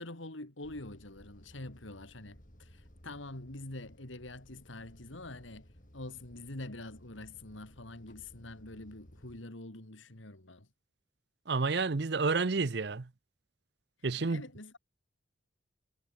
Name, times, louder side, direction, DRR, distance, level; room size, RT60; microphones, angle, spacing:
voice 1, 0.0-10.7 14.2-14.8, left 2 dB, 85° left, 3.1 m, -45 dB
sound 1, 0.6-9.4, equal, 40° left, 4.8 m, -58 dB
voice 2, 11.5-13.0 14.0-14.4, right 4 dB, 60° right, 0.7 m, -30 dB
head